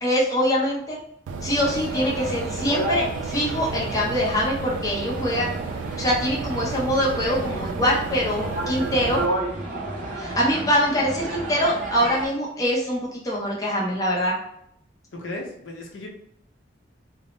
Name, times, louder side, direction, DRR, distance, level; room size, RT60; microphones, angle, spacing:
voice 1, 0.0-1.0 1.4-5.5 6.0-9.2 10.1-14.4, equal, 20° left, -4 dB, 0.7 m, -24 dB
sound 1, 1.3-9.3, right 4 dB, 85° right, 0.3 m, -33 dB
sound 2, 1.6-12.3, right 1 dB, 45° right, 0.7 m, -32 dB
voice 2, 15.1-16.1, left 2 dB, 85° left, 0 dB, 0.7 m, -35 dB
2.6 x 2.0 x 3.1 m, 0.73 s
head